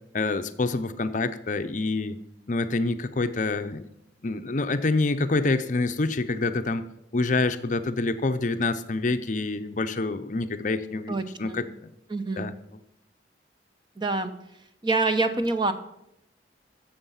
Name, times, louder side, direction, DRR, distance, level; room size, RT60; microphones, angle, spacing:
voice 1, 0.1-2.2 2.5-3.9 4.2-6.9 7.1-11.9 12.4-12.5, left 3 dB, 45° left, 9 dB, 0.6 m, -27 dB
voice 2, 11.1-11.6 12.1-12.5 14.0-14.3 14.8-15.7, right 3 dB, 25° right, 9 dB, 0.8 m, -26 dB
15.0 x 7.2 x 5.6 m, 0.82 s
head